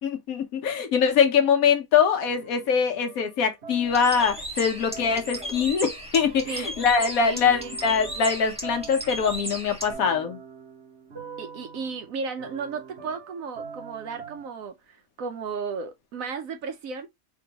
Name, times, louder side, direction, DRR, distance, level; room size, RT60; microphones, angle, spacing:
voice 1, 0.0-10.4, left 6 dB, 75° left, 1.2 m, -23 dB
sound 1, 2.3-4.5 4.9-14.6, right 5 dB, 50° right, 1.4 m, -43 dB
Bird, 3.8-9.9, equal, 5° right, 1.1 m, -36 dB
voice 2, 7.2-7.8 11.4-17.1, right 5 dB, 70° right, 1.0 m, -34 dB
4.5 x 3.1 x 2.8 m
omnidirectional pair, 1.5 m